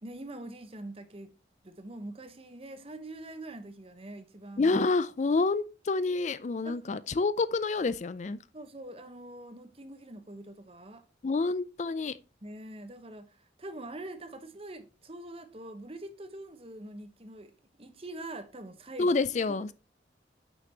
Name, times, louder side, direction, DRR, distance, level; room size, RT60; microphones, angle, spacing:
voice 1, 0.0-1.3 1.6-4.8 6.6-6.9 8.5-11.0 12.4-19.2 19.5-19.7, right 1 dB, 30° right, 1.0 m, -44 dB
voice 2, 4.6-8.4 11.2-12.2 19.0-19.7, left 3 dB, 40° left, 0.4 m, -28 dB
9.2 x 6.0 x 2.9 m
head